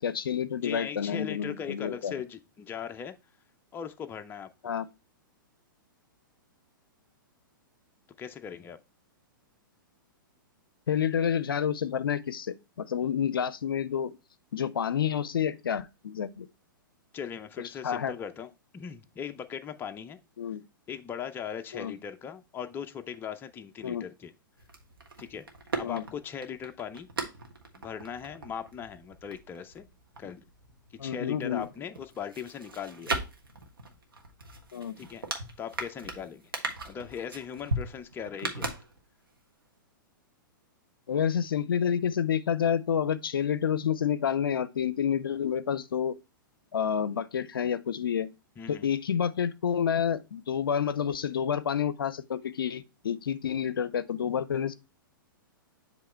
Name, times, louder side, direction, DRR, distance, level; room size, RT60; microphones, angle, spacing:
voice 1, 0.0-2.1 4.6-4.9 10.9-14.1 14.5-16.5 17.8-18.1 20.4-20.6 21.7-21.9 23.8-24.0 25.8-26.0 31.0-31.7 34.7-35.0 41.1-46.2 46.7-48.3 48.7-54.7, left 8 dB, 80° left, 0.5 m, -29 dB
voice 2, 0.6-3.1 3.7-4.5 8.2-8.8 17.1-18.5 18.7-20.2 20.9-24.3 25.2-25.5 25.8-27.1 27.7-29.9 30.2-30.5 31.0-33.2 35.0-35.2 35.6-36.5 36.9-38.7 48.6-48.9, left 8 dB, 20° left, 0.5 m, -39 dB
sound 1, 24.6-31.1 31.4-39.4 39.7-39.8, right 2 dB, 85° right, 1.4 m, -38 dB
7.6 x 3.1 x 4.3 m
hypercardioid pair, 115°, 12 cm